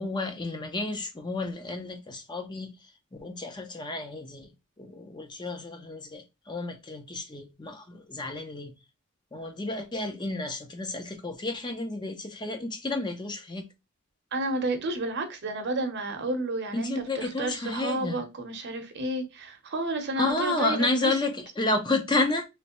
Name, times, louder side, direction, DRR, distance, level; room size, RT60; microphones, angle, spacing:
voice 1, 0.0-4.5 4.8-8.7 9.3-13.6 16.7-18.2 20.2-22.4, left 2 dB, 20° left, 0.5 m, -31 dB
voice 2, 14.3-21.1, right 2 dB, 55° right, 0.8 m, -31 dB
3.2 x 3.1 x 2.9 m
head